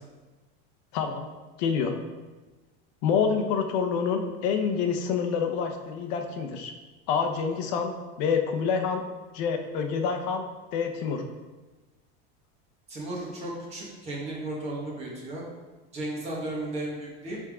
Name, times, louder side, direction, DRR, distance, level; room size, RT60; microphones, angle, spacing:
voice 1, 0.9-1.3 1.6-1.9 3.0-6.7 7.1-9.0 9.3-10.4 10.7-11.2, left 6 dB, 45° left, 5 dB, 0.7 m, -27 dB
voice 2, 12.9-15.4 15.9-17.4, right 1 dB, 20° right, -4 dB, 1.4 m, -34 dB
10.0 x 3.6 x 3.6 m, 1.2 s
supercardioid pair, 175°, 30 cm